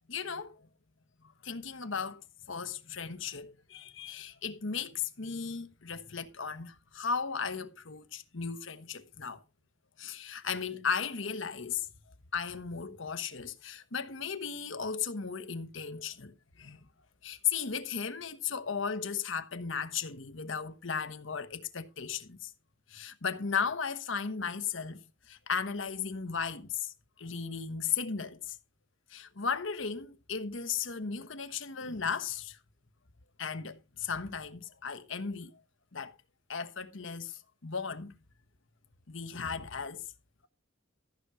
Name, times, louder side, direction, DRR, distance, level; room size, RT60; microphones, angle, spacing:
voice 1, 0.1-0.7 1.2-9.4 10.0-11.9 12.3-16.8 17.2-22.5 22.9-28.6 29.1-32.6 33.4-35.6 35.9-36.1 36.5-38.1 39.1-40.0, left 6 dB, 80° left, 1.2 m, -36 dB
14.0 x 6.3 x 4.7 m
head